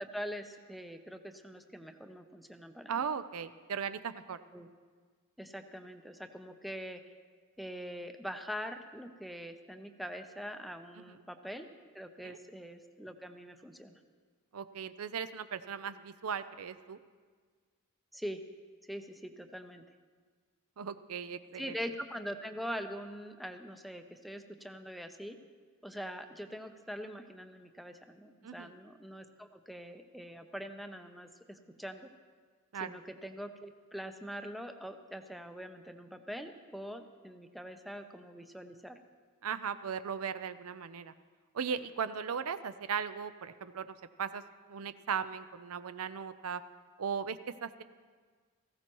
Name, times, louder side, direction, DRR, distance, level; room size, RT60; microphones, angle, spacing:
voice 1, 0.0-3.0 4.5-4.7 5.4-7.0 7.6-11.7 11.9-14.0 18.1-18.4 18.9-19.8 21.6-25.4 25.8-32.1 32.7-39.0, equal, ahead, 6 dB, 0.6 m, -43 dB
voice 2, 2.9-4.4 12.2-12.4 14.5-17.0 20.8-21.7 28.4-28.8 32.7-33.0 39.4-41.1 41.5-44.4 44.7-46.6 47.0-47.8, right 7 dB, 85° right, 12 dB, 0.5 m, -37 dB
18.0 x 15.5 x 3.0 m, 1.5 s
head